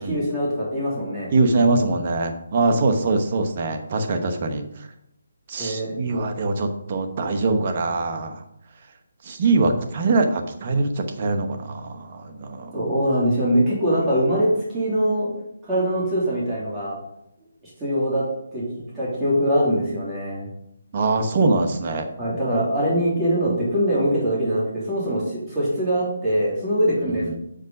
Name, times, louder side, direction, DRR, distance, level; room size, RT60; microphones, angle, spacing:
voice 1, 0.1-1.3 5.6-5.9 12.7-15.3 15.7-17.0 17.8-18.2 18.5-18.6 18.9-20.5 22.2-27.2, equal, 10° right, -9 dB, 2.9 m, -22 dB
voice 2, 1.3-4.9 5.5-8.4 9.2-12.8 20.9-22.1 27.1-27.4, right 3 dB, 35° right, 5 dB, 1.2 m, -23 dB
7.6 x 5.2 x 5.4 m, 0.77 s
hypercardioid pair, 160°, 0 cm